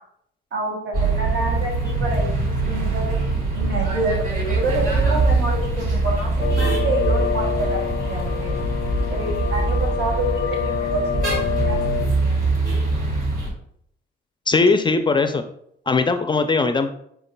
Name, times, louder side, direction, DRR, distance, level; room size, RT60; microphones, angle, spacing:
voice 1, 0.5-3.2 3.5-8.6 9.1-12.4, right 2 dB, 65° right, -1 dB, 1.7 m, -28 dB
sound 1, 0.9-13.5, right 3 dB, 45° right, 1.7 m, -23 dB
sound 2, 6.4-12.1, left 10 dB, 90° left, 0.4 m, -27 dB
voice 2, 14.5-15.4 15.9-16.9, left 3 dB, 25° left, 8 dB, 0.4 m, -19 dB
5.2 x 4.6 x 2.2 m, 0.71 s
cardioid pair, 90°, 20 cm